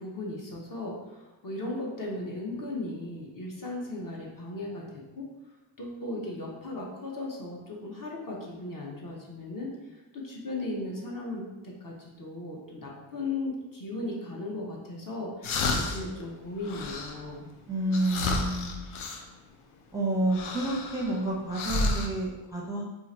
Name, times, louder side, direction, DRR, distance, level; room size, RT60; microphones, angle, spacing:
voice 1, 0.0-5.3 5.8-17.5, left 2 dB, 40° left, -2 dB, 0.8 m, -37 dB
sound 1, 15.4-16.2 16.6-17.3 17.9-19.2 20.3-21.2 21.5-22.1, left 2 dB, 80° left, 0.6 m, -31 dB
voice 2, 17.7-18.9 19.9-22.8, right 1 dB, 5° right, -5 dB, 0.5 m, -29 dB
2.8 x 2.4 x 4.1 m, 1.1 s
wide cardioid pair, 100°, 49 cm